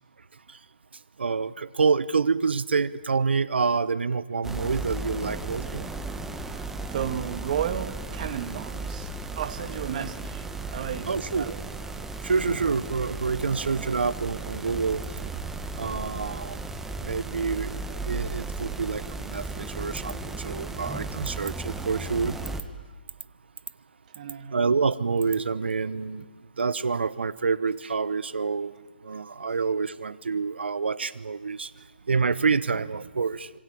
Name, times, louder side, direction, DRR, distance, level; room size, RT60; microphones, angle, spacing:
voice 1, 1.2-5.9 11.1-11.5 12.2-15.0 15.8-16.6 17.0-22.4 24.5-26.2 26.6-31.7 32.1-33.5, right 5 dB, 75° right, 17 dB, 1.1 m, -27 dB
sound 1, 4.4-22.6, right 3 dB, 5° right, 1.5 m, -35 dB
voice 2, 6.9-9.1 9.4-10.5 10.7-11.1 11.4-11.6 13.5-14.0 24.2-24.7, right 8 dB, 45° right, 10 dB, 2.1 m, -33 dB
26.5 x 25.0 x 8.8 m, 1.3 s
hypercardioid pair, 145°, 6 cm